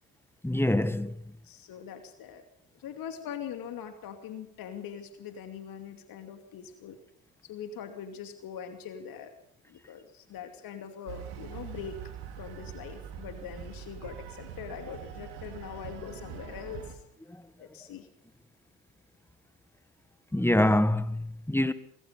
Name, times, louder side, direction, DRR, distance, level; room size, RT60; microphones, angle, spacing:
voice 1, 0.4-1.2 17.3-17.4 20.3-21.7, left 1 dB, 5° left, 1.6 m, -25 dB
voice 2, 1.4-2.4 2.8-7.0 7.4-9.3 9.7-12.0 12.4-17.0 17.6-18.1, left 8 dB, 50° left, 2.7 m, -42 dB
sound 1, 11.1-16.9, right 9 dB, 65° right, 3.9 m, -43 dB
23.5 x 22.0 x 5.4 m
figure-of-eight pair, 60°, 43 cm